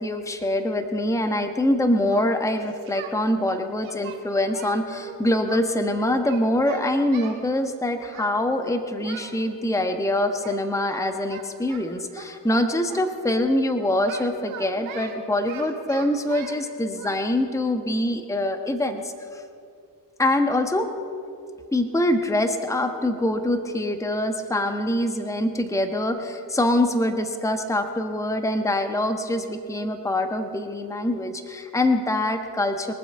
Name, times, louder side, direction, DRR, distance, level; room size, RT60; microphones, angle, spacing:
voice 1, 0.0-19.4 20.2-20.9 21.7-32.9, left 1 dB, 5° left, 7 dB, 1.2 m, -24 dB
Singing, 2.0-3.1 3.5-5.6 6.1-7.4 8.1-8.4 8.6-9.4 10.4-10.6 10.9-13.1 14.1-16.6 17.0-17.1, right 8 dB, 70° right, 1.9 m, -41 dB
22.5 x 7.6 x 5.6 m, 2.4 s
hypercardioid pair, 55°, 50 cm